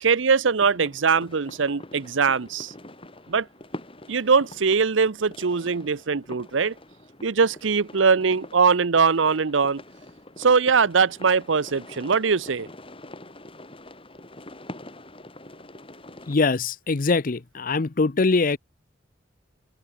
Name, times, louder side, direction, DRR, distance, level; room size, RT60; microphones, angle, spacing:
voice 1, 0.0-2.7 3.3-3.5 4.1-6.7 7.2-9.8 10.4-12.7, right 5 dB, 90° right, 0.7 m, -21 dB
sound 1, 0.6-16.4, left 1 dB, 30° left, 6.3 m, -45 dB
voice 2, 16.3-18.6, left 3 dB, 45° left, 0.6 m, -22 dB
open air
head